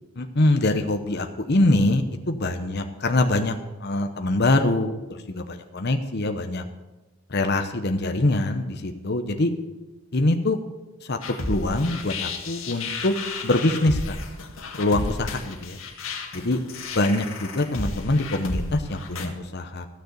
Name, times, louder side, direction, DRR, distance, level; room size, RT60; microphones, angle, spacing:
voice 1, 0.2-3.6 3.8-6.6 7.3-9.5 10.1-10.6 11.1-11.2 11.5-13.1 13.4-14.2 14.8-15.8 16.3-16.6 16.9-19.9, left 2 dB, 50° left, 6 dB, 0.9 m, -24 dB
sound 1, 11.2-19.3, left 3 dB, 70° left, 1.8 m, -33 dB
15.0 x 6.7 x 8.0 m, 1.1 s
head